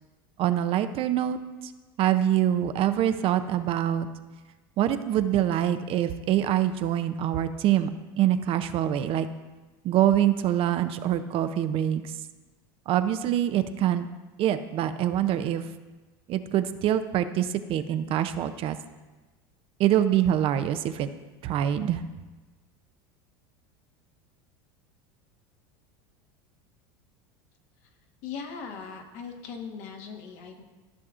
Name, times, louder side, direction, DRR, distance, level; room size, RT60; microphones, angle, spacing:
voice 1, 0.4-1.7 2.0-4.1 4.8-7.9 8.2-9.3 9.8-12.1 12.9-14.1 14.4-15.6 16.3-18.8 19.8-21.1 21.4-22.0, right 11 dB, 45° right, 10 dB, 0.5 m, -25 dB
voice 2, 28.2-30.6, left 6 dB, 65° left, 3 dB, 1.3 m, -39 dB
13.5 x 5.9 x 2.5 m, 1.2 s
supercardioid pair, 105°, 13 cm